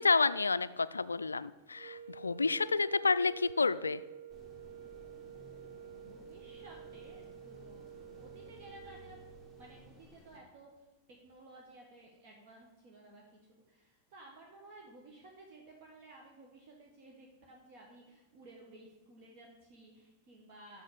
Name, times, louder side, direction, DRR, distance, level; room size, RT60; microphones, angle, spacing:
voice 1, 0.0-4.0, left 4 dB, 75° left, 16 dB, 0.3 m, -30 dB
sound 1, 1.7-9.9, right 9 dB, 60° right, 0.5 m, -50 dB
sound 2, 4.3-10.4, left 2 dB, 15° right, 1.9 m, -57 dB
voice 2, 5.9-7.9 8.1-9.2 9.5-20.8, right 2 dB, 45° right, -1 dB, 1.4 m, -56 dB
6.4 x 6.3 x 7.1 m, 1.1 s
figure-of-eight pair, 90°, 0 cm